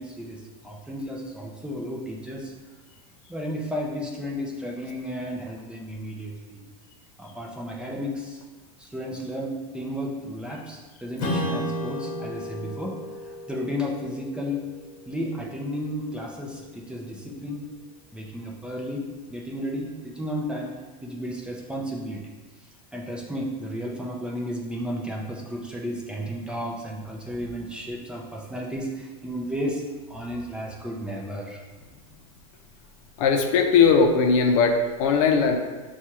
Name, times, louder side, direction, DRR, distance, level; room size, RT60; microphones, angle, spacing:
voice 1, 0.0-2.5 3.3-6.6 7.2-8.4 8.8-13.0 13.2-14.7 15.1-17.6 18.1-20.7 21.0-22.2 22.9-29.8 30.1-31.6, equal, 5° right, -2 dB, 0.5 m, -33 dB
Strum, 11.2-16.1, left 1 dB, 45° left, 1.1 m, -34 dB
voice 2, 33.2-35.6, left 5 dB, 65° left, 4 dB, 0.6 m, -19 dB
6.0 x 2.3 x 2.9 m, 1.3 s
supercardioid pair, 125°, 19 cm